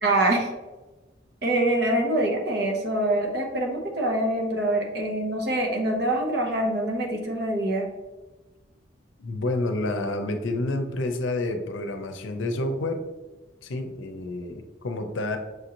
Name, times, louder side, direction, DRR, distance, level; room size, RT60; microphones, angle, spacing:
voice 1, 0.0-0.5 1.4-7.9, right 1 dB, 55° right, 0 dB, 0.9 m, -25 dB
voice 2, 9.2-13.0 13.6-15.4, left 2 dB, 85° left, 6 dB, 0.6 m, -29 dB
6.3 x 2.6 x 2.9 m, 1.1 s
head